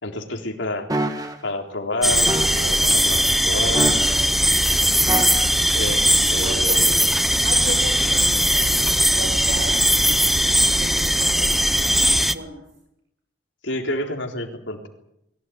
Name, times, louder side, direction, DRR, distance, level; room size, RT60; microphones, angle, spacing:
voice 1, 0.0-0.9 1.4-4.0 5.7-7.0 13.6-14.9, left 1 dB, 90° left, 3 dB, 3.9 m, -29 dB
sound 1, 0.9-1.4 2.3-2.7 3.7-4.3 5.1-5.7 6.4-6.6, right 1 dB, 20° right, 2.2 m, -26 dB
sound 2, 2.0-12.3, equal, ahead, 0.8 m, -19 dB
voice 2, 7.4-9.8 10.4-11.5 11.8-12.6, right 1 dB, 75° right, 0 dB, 6.6 m, -35 dB
22.5 x 16.5 x 9.5 m, 0.81 s
head